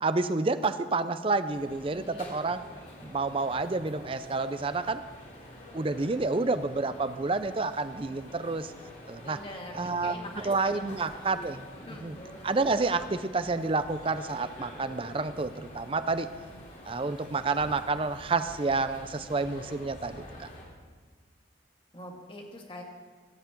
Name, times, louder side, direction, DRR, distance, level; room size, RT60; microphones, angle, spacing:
voice 1, 0.0-2.6 3.0-5.0 5.7-8.7 9.1-9.4 9.7-10.2 10.4-11.7 12.0-12.2 12.4-16.3 16.9-20.5, right 3 dB, 30° right, 12 dB, 0.5 m, -29 dB
sound 1, 1.5-20.7, left 1 dB, 45° left, 3.6 m, -47 dB
voice 2, 1.9-2.3 9.2-11.0 11.7-12.1 21.9-22.8, left 1 dB, 30° left, 0 dB, 1.9 m, -44 dB
16.5 x 5.8 x 8.3 m, 1.5 s
head